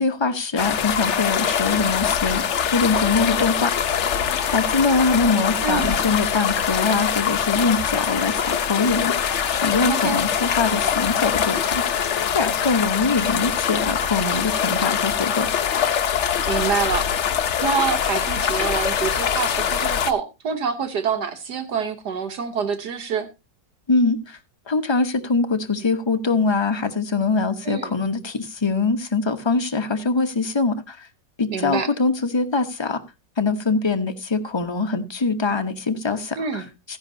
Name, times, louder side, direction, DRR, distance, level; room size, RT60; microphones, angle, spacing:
voice 1, 0.0-3.7 4.5-15.5 23.9-24.4 24.7-31.1 31.4-33.0 33.4-37.0, left 4 dB, 25° left, 0.7 m, -23 dB
sound 1, 0.6-20.1, left 8 dB, 50° left, 0.9 m, -23 dB
voice 2, 5.6-6.0 9.9-10.2 16.5-17.1 17.6-23.3 27.6-27.9 31.5-31.9 36.4-36.7, right 6 dB, 70° right, 1.6 m, -26 dB
14.5 x 10.5 x 2.7 m
omnidirectional pair, 1.9 m